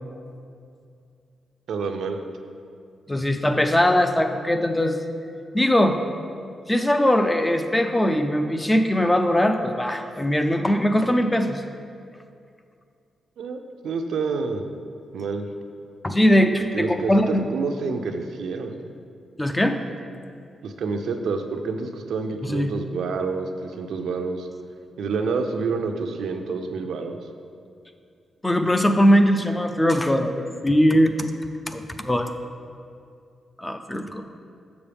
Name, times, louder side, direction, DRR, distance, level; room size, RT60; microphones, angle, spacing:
voice 1, 1.7-2.2 13.4-14.6 15.1-15.5 16.7-18.8 20.6-24.5 25.0-27.2, right 4 dB, 80° right, 5 dB, 0.5 m, -28 dB
voice 2, 3.1-5.0 5.5-6.0 6.7-11.6 16.0-17.5 19.4-19.8 22.4-22.7 28.4-31.1 31.7-32.3 33.6-34.2, equal, 10° left, 7 dB, 0.3 m, -20 dB
7.0 x 6.8 x 3.4 m, 2.4 s
wide cardioid pair, 150°, 0 cm